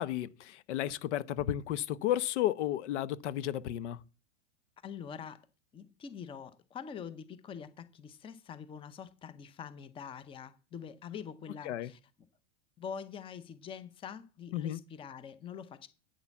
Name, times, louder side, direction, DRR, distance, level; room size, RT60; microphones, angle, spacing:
voice 1, 0.0-4.0 11.7-11.9 14.5-14.8, left 12 dB, 75° left, 0.9 m, -33 dB
voice 2, 4.8-5.5 5.7-12.0 12.8-15.9, left 7 dB, 15° left, 0.7 m, -45 dB
9.0 x 6.7 x 7.1 m
supercardioid pair, 145°, 35 cm